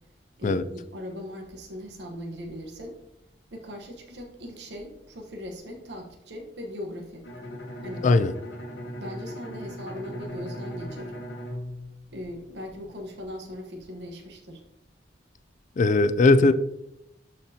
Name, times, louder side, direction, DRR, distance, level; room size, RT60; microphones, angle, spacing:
voice 1, 0.4-3.0 3.5-7.2 7.8-8.1 9.0-11.1 12.1-14.6, left 1 dB, 70° right, 2 dB, 1.2 m, -39 dB
Bowed string instrument, 7.2-12.9, equal, 85° left, 1.1 m, -38 dB
voice 2, 15.8-16.5, left 3 dB, 45° left, 13 dB, 0.4 m, -19 dB
11.5 x 4.4 x 2.8 m, 0.82 s
head